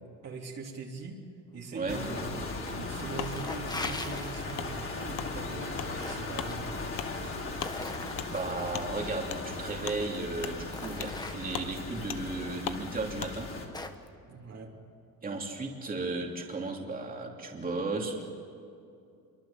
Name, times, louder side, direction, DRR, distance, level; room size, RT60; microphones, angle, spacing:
voice 1, 0.2-1.2 1.5-2.4 2.7-6.9 14.3-14.7, right 4 dB, 45° right, -1 dB, 3.3 m, -42 dB
sound 1, 1.9-13.7, left 3 dB, 35° left, 3.9 m, -38 dB
sound 2, 2.4-2.8 3.1-4.8 5.6-6.6 7.2-8.7 9.8-9.9 10.4-11.7 12.6-12.7 13.2-14.1, left 2 dB, 10° left, 1.3 m, -41 dB
Wood, 3.2-3.3 3.8-3.9 4.5-4.7 5.1-5.3 5.7-5.9 6.3-6.5 6.9-7.1 7.6-7.7 8.2-8.3 8.7-8.9 9.3-9.4 9.8-10.0 10.4-10.6 11.0-11.2 11.5-11.7 12.1-12.2 12.6-12.8 13.2-13.3, left 11 dB, 65° left, 1.2 m, -37 dB
voice 2, 8.3-13.5 15.2-18.2, right 3 dB, 25° right, 1 dB, 2.9 m, -35 dB
27.0 x 23.5 x 7.3 m, 2.5 s
cardioid pair, 140°, 36 cm